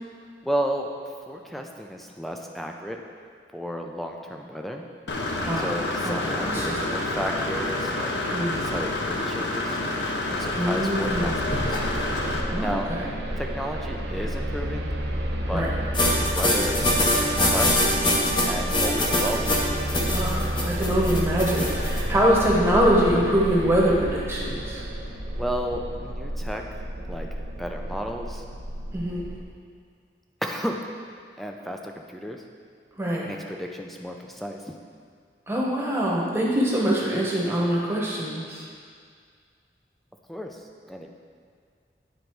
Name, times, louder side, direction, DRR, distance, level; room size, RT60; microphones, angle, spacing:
voice 1, 0.4-0.9 1.3-3.0 3.5-4.8 5.6-8.1 8.6-9.8 10.3-11.8 12.6-12.9 13.4-14.9 15.5-18.0 18.4-19.6 25.4-27.3 27.6-28.4 30.4-30.8 31.4-32.4 33.3-34.8 40.3-40.6 40.9-41.1, equal, ahead, 2 dB, 0.4 m, -33 dB
Engine / Mechanisms, 5.1-12.4, left 2 dB, 85° left, 0.7 m, -28 dB
voice 2, 6.0-6.8 8.3-8.7 10.6-11.3 12.5-13.1 15.5-15.7 20.1-24.8 28.9-29.3 33.0-33.3 35.5-38.6, equal, 15° right, -4 dB, 1.0 m, -24 dB
sound 1, 11.1-29.4, equal, 85° right, 0.7 m, -31 dB
sound 2, 15.9-22.0, left 1 dB, 25° left, 0.8 m, -23 dB
9.5 x 4.0 x 4.5 m, 2.1 s
head